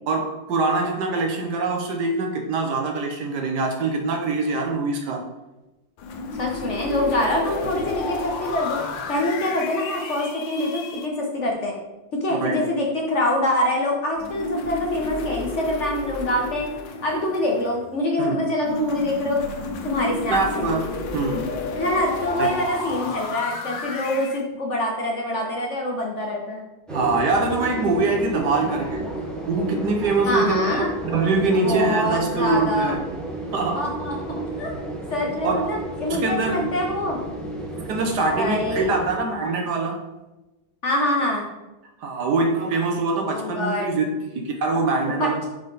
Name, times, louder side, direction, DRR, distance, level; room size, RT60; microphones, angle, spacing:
voice 1, 0.1-5.2 7.6-7.8 12.3-12.7 18.2-18.4 20.3-21.5 22.4-22.5 26.9-29.1 29.5-33.1 33.5-33.9 35.4-35.7 36.0-36.7 37.7-40.0 42.0-45.5, right 3 dB, 70° right, 2 dB, 1.5 m, -24 dB
sound 1, 6.0-11.1 14.2-18.0 18.7-24.4, left 3 dB, 80° left, 1.5 m, -32 dB
voice 2, 6.4-8.8 9.1-11.7 12.1-16.7 17.0-19.4 19.8-20.7 21.7-26.6 30.3-30.9 31.6-33.0 33.7-34.7 35.1-37.2 38.3-39.0 40.8-41.5 43.3-43.9 45.2-45.5, left 1 dB, 45° left, -1 dB, 1.2 m, -25 dB
sound 2, 26.9-39.2, right 2 dB, ahead, 0.5 m, -32 dB
5.6 x 5.3 x 4.0 m, 1.0 s
omnidirectional pair, 2.0 m